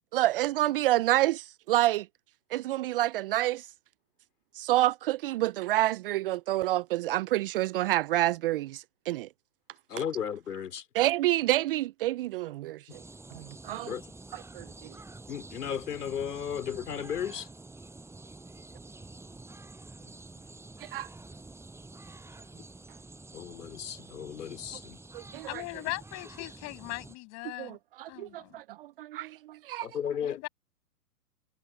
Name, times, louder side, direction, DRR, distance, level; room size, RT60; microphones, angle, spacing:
voice 1, 0.1-2.1 2.5-3.7 4.5-9.3 9.9-10.0 10.9-13.0 13.3-14.0 14.3-14.9 20.8-21.1 25.1-25.6 27.6-29.9, right 15 dB, 35° right, 0.7 m, -28 dB
voice 2, 9.9-10.8 13.8-14.0 15.3-17.5 23.3-25.0 29.8-30.5, left 8 dB, 70° left, 3.7 m, -35 dB
sound 1, 12.9-27.2, right 2 dB, 5° right, 7.5 m, -48 dB
voice 3, 25.5-27.8 28.1-28.6 30.2-30.5, left 25 dB, 35° left, 7.4 m, -39 dB
hypercardioid pair, 125°, 48 cm